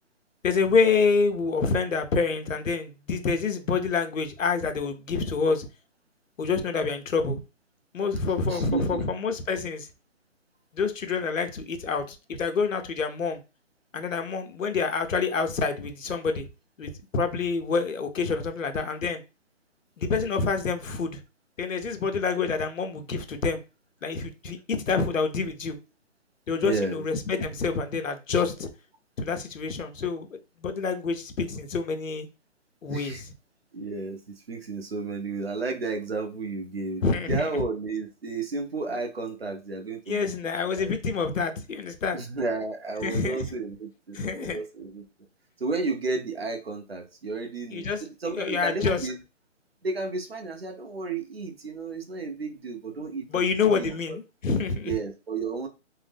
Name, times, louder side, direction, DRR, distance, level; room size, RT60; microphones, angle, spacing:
voice 1, 0.4-5.7 6.4-7.4 7.9-9.9 10.7-13.4 13.9-16.5 16.8-19.2 20.0-21.2 21.6-23.6 24.0-25.8 26.5-28.7 29.2-32.3 32.8-33.3 37.0-37.5 40.1-42.2 43.0-43.5 44.1-44.6 47.7-48.0 48.3-49.1 53.3-55.0, left 4 dB, 85° left, 0.8 m, -27 dB
voice 2, 8.5-9.0 26.6-27.0 32.9-33.2 33.7-40.3 40.8-41.0 42.1-45.0 45.6-49.2 49.8-54.2 54.8-55.7, right 3 dB, 50° right, 0.7 m, -32 dB
2.6 x 2.0 x 3.4 m
hypercardioid pair, 180°, 38 cm